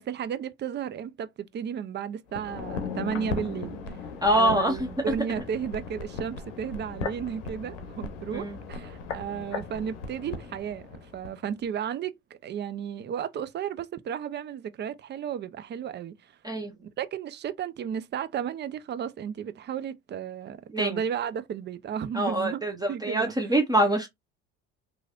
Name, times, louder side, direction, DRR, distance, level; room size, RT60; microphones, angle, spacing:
voice 1, 0.0-4.0 4.3-12.2 12.4-16.3 17.0-22.6 22.9-23.3, right 8 dB, 30° right, 0.4 m, -33 dB
sound 1, 2.3-11.4 11.6-11.7, left 4 dB, 85° left, 0.7 m, -37 dB
voice 2, 4.2-4.9 8.3-8.6 16.4-16.7 20.7-21.0 22.1-24.1, right 1 dB, 10° right, 0.8 m, -25 dB
3.1 x 2.6 x 2.3 m
hypercardioid pair, 65°, 36 cm